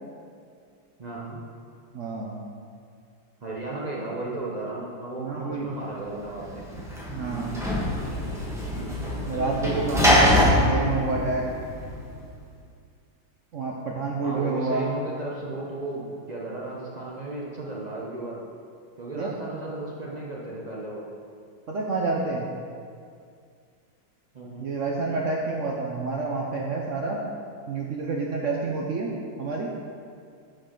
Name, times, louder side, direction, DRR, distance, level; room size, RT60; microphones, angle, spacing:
voice 1, 1.0-1.4 3.4-6.6 14.2-18.4 19.0-21.0 24.3-24.7, right 2 dB, 80° right, -4 dB, 0.3 m, -34 dB
voice 2, 1.9-2.4 5.2-5.7 7.1-7.6 9.2-11.4 13.5-14.9 19.2-19.3 21.7-22.5 24.6-27.2 27.7-29.7, right 3 dB, 60° right, -1 dB, 0.8 m, -28 dB
Sliding door / Slam, 6.3-12.1, left 1 dB, ahead, 0.9 m, -24 dB
10.0 x 5.2 x 3.8 m, 2.3 s
omnidirectional pair, 2.0 m